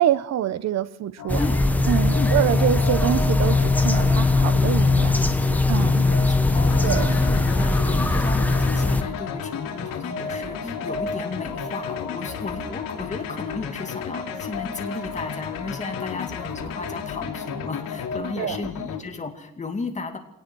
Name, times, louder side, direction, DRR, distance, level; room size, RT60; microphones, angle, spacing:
voice 1, 0.0-1.4 1.8-5.2 5.7-6.1 6.8-7.2 18.4-18.7, right 11 dB, 50° right, 15 dB, 1.0 m, -25 dB
sound 1, 1.2-18.2, left 3 dB, 65° left, 7.9 m, -35 dB
sound 2, 1.3-9.0, left 2 dB, 5° left, 0.9 m, -20 dB
voice 2, 5.9-20.2, left 4 dB, 20° left, 4 dB, 2.4 m, -34 dB
sound 3, 6.6-19.0, left 8 dB, 80° left, 3.1 m, -35 dB
23.0 x 18.5 x 6.3 m, 0.81 s
cardioid pair, 170°, 34 cm